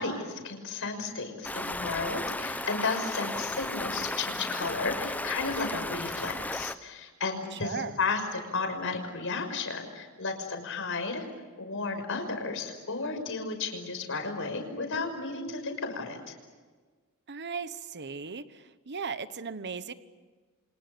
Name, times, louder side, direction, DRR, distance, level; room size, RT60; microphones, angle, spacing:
voice 1, 0.0-11.2 11.6-16.3, left 4 dB, 65° left, 5 dB, 6.0 m, -33 dB
Stream, 1.4-6.8, left 1 dB, 5° left, 0.7 m, -34 dB
voice 2, 7.5-8.0 17.3-19.9, right 5 dB, 50° right, 12 dB, 1.1 m, -37 dB
30.0 x 26.5 x 7.0 m, 1.4 s
head